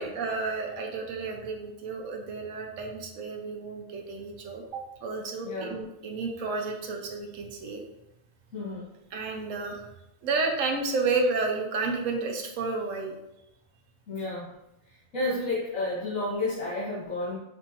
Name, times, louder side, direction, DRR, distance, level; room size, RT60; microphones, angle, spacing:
voice 1, 0.0-7.8 9.1-9.9 10.2-13.1, right 3 dB, 80° right, 2 dB, 1.1 m, -31 dB
voice 2, 5.4-5.8 8.5-8.9 14.1-14.5 15.1-17.4, left 2 dB, 70° left, -8 dB, 1.5 m, -31 dB
5.3 x 2.8 x 2.7 m, 0.89 s
omnidirectional pair, 1.4 m